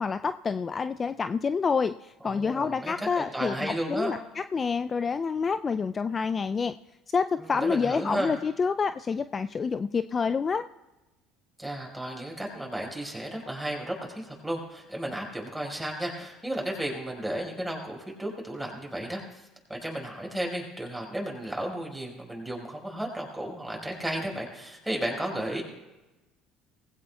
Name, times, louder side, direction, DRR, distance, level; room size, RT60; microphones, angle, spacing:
voice 1, 0.0-6.7 7.1-10.6, left 5 dB, 35° left, 11 dB, 0.4 m, -28 dB
voice 2, 2.2-4.1 7.4-8.3 11.6-25.6, right 1 dB, 5° right, -1 dB, 4.9 m, -34 dB
20.0 x 16.0 x 2.3 m, 1.1 s
hypercardioid pair, 70°, 0 cm